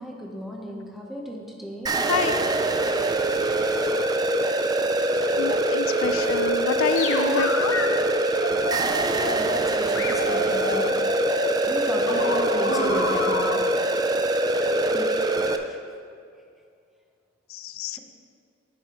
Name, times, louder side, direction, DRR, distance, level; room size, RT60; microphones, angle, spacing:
voice 1, 0.0-1.9 3.5-3.6 9.3-11.1 11.7-13.6 14.9-15.1 15.6-15.8 17.9-18.0, equal, ahead, -1 dB, 0.9 m, -35 dB
sound 1, 1.9-15.6, right 2 dB, 20° right, 0.4 m, -23 dB
voice 2, 2.1-2.4 5.4-7.8 17.5-18.0, left 6 dB, 85° left, 11 dB, 0.4 m, -27 dB
sound 2, 6.8-7.9 8.4-9.6 10.0-13.6, left 3 dB, 65° left, 0.8 m, -29 dB
10.5 x 8.6 x 3.0 m, 2.3 s
head